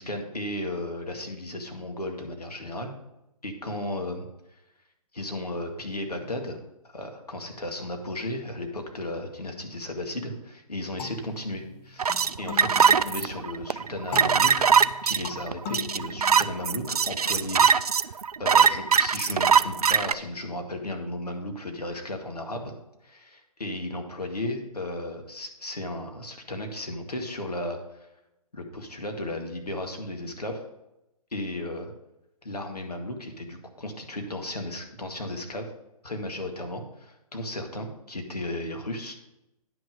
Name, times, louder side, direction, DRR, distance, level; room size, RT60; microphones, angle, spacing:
voice 1, 0.0-2.9 3.4-4.3 5.1-6.6 6.8-14.8 15.0-17.6 17.9-22.7 23.0-28.1 28.5-30.6 31.3-31.9 32.4-35.7 36.0-39.2, left 1 dB, 85° left, 4 dB, 2.0 m, -35 dB
sound 1, 11.0-13.5 14.1-16.9, left 7 dB, 15° left, 0.6 m, -41 dB
sound 2, 12.0-20.1, right 6 dB, 80° right, 0.5 m, -21 dB
10.0 x 6.4 x 5.3 m, 0.90 s
figure-of-eight pair, 135°, 20 cm